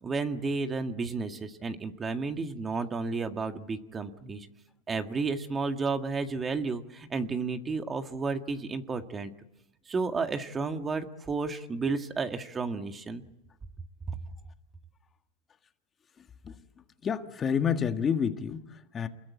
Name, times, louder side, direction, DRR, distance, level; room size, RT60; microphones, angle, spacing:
voice 1, 0.0-4.5 4.9-9.3 9.9-13.2, right 4 dB, 20° right, 7 dB, 1.8 m, -32 dB
voice 2, 17.0-19.1, left 7 dB, 25° left, 7 dB, 1.7 m, -29 dB
28.0 x 21.5 x 8.5 m, 0.88 s
supercardioid pair, 120°, 0 cm